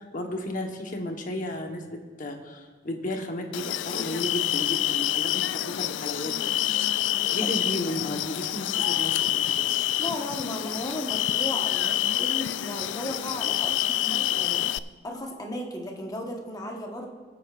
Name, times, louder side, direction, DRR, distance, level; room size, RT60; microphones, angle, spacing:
voice 1, 0.0-6.7 7.3-9.1 9.4-9.6, left 1 dB, 45° left, 3 dB, 1.2 m, -34 dB
sound 1, 3.5-14.8, left 12 dB, 90° left, 0.3 m, -27 dB
voice 2, 10.0-14.6 15.0-17.1, left 1 dB, 20° left, 0 dB, 1.2 m, -35 dB
20.5 x 8.4 x 2.5 m, 1.5 s
head